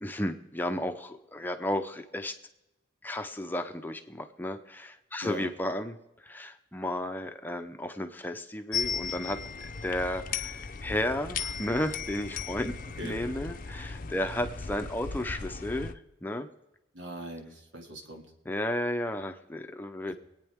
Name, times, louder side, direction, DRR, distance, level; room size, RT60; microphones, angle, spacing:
voice 1, 0.0-2.3 3.0-12.7 13.0-16.5 18.5-20.1, left 1 dB, 10° left, 6 dB, 0.7 m, -33 dB
voice 2, 5.2-5.5 13.0-13.2 16.9-18.3 20.1-20.2, equal, 80° right, 2 dB, 2.4 m, -40 dB
sound 1, 8.7-15.9, left 5 dB, 45° left, 0.6 m, -37 dB
25.5 x 9.1 x 3.6 m, 0.94 s
head